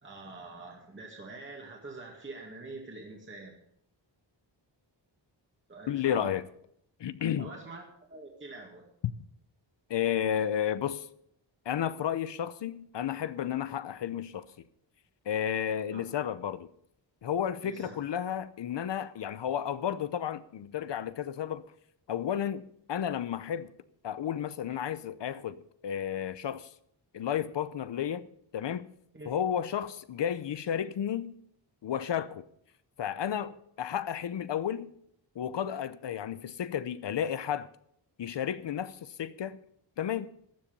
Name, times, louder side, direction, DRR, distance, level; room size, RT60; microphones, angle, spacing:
voice 1, 0.0-3.5 5.7-6.3 7.4-8.9 15.9-16.0 17.6-18.0 29.1-29.3, right 3 dB, 25° right, 2.2 m, -45 dB
voice 2, 5.9-6.5 7.0-7.5 9.9-11.1 11.7-14.5 15.3-16.7 17.2-21.6 22.1-23.7 24.0-26.7 27.1-28.3 28.5-28.9 29.2-31.4 31.8-32.4 33.0-34.9 35.4-37.7 38.2-39.6 40.0-40.3, left 9 dB, 65° left, 0.8 m, -32 dB
15.0 x 10.5 x 5.3 m
wide cardioid pair, 165°, 45 cm